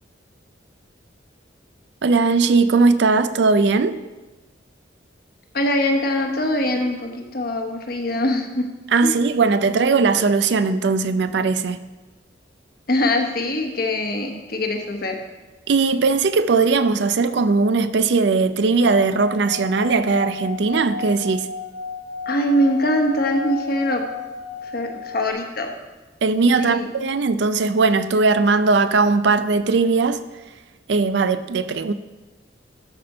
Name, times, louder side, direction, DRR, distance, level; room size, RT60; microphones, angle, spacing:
voice 1, 2.0-4.0 8.9-11.8 15.7-21.5 26.2-30.2 30.9-31.9, right 4 dB, 65° right, 0.4 m, -19 dB
voice 2, 5.5-8.7 9.0-9.2 12.9-15.2 22.3-24.1 24.6-25.7 26.6-26.9, left 1 dB, 55° left, 1.1 m, -22 dB
Singing / Glass, 18.7-25.3, left 5 dB, 75° left, 2.7 m, -33 dB
12.5 x 4.3 x 5.5 m
head